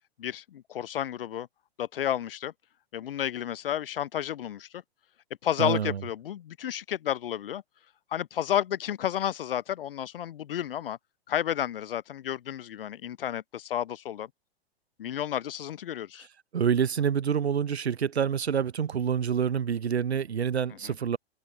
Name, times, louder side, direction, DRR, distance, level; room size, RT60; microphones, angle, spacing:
voice 1, 0.2-1.5 1.8-2.5 2.9-4.8 5.4-7.6 8.1-11.0 11.3-14.3 15.0-16.3 20.8-20.9, left 11 dB, 60° left, 0.6 m, -31 dB
voice 2, 5.6-6.0 16.5-21.2, right 7 dB, 75° right, 0.7 m, -27 dB
figure-of-eight pair, 105°, 32 cm